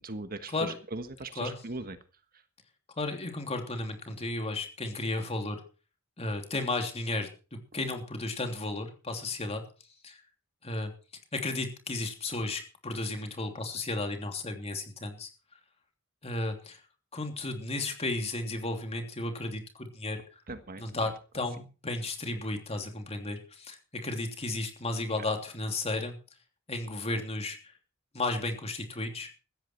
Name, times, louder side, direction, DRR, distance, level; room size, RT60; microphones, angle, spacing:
voice 1, 0.0-2.0 20.5-20.8, right 2 dB, 45° right, 9 dB, 1.5 m, -39 dB
voice 2, 3.0-5.6 6.2-7.3 7.7-9.6 10.0-10.2 10.6-10.9 11.3-15.3 16.2-16.8 17.1-20.2 20.8-23.8 24.0-26.2 26.7-27.6 28.1-29.3, left 2 dB, 30° left, 4 dB, 3.1 m, -33 dB
15.5 x 13.5 x 4.5 m, 0.36 s
head